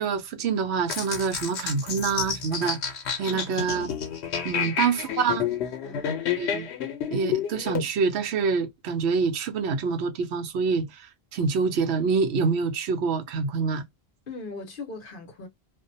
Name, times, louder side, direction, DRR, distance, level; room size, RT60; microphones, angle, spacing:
voice 1, 0.0-2.8 3.2-3.9 4.4-5.5 6.4-6.7 7.1-13.8, right 5 dB, 80° right, 0.9 m, -26 dB
sound 1, 0.9-7.8, left 8 dB, 85° left, 1.0 m, -30 dB
voice 2, 4.5-4.8 5.8-6.1 14.3-15.5, left 3 dB, 55° left, 0.9 m, -39 dB
2.5 x 2.1 x 2.6 m
omnidirectional pair, 1.1 m